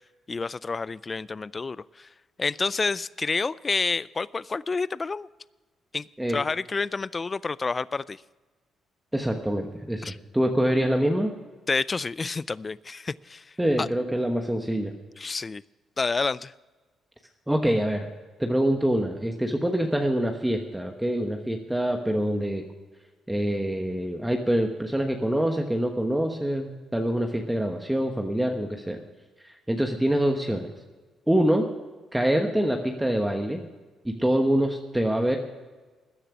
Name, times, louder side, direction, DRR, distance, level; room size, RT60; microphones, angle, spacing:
voice 1, 0.3-2.1 2.4-5.3 5.9-8.2 10.0-10.2 11.7-13.4 13.8-13.9 15.2-15.6 16.0-16.5, left 4 dB, 30° left, 20 dB, 0.3 m, -29 dB
voice 2, 9.1-11.3 13.6-14.9 17.5-18.1 18.4-22.6 23.3-29.0 29.7-30.6 31.3-31.7 32.1-33.6 34.0-35.4, right 1 dB, 5° right, 4 dB, 1.2 m, -25 dB
14.0 x 10.0 x 6.0 m, 1.3 s
cardioid pair, 90°, 0 cm